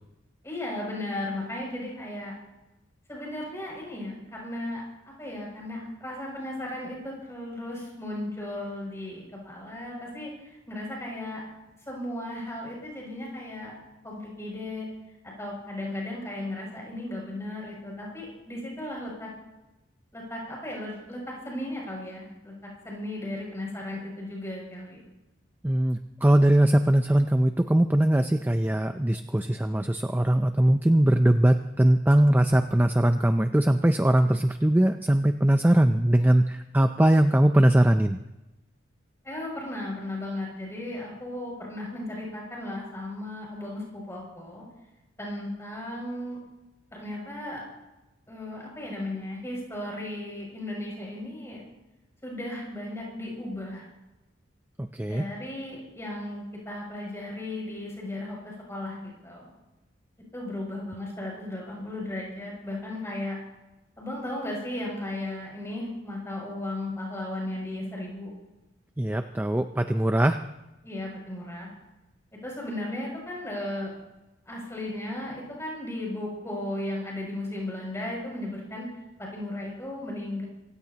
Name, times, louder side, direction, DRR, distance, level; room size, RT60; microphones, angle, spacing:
voice 1, 0.4-2.3 3.1-11.4 11.9-13.7 14.0-14.9 15.4-19.3 20.1-22.5 22.8-25.0 39.2-44.6 45.2-46.4 46.9-47.6 48.3-51.6 52.2-53.9 55.1-59.5 60.3-63.4 64.0-68.3 70.8-71.7 72.4-73.9 74.4-78.9 79.2-80.5, left 1 dB, 15° left, -2 dB, 6.8 m, -35 dB
voice 2, 25.6-38.2 54.9-55.2 69.0-70.4, right 1 dB, 10° right, 7 dB, 0.4 m, -21 dB
26.5 x 16.5 x 2.9 m, 1.0 s
head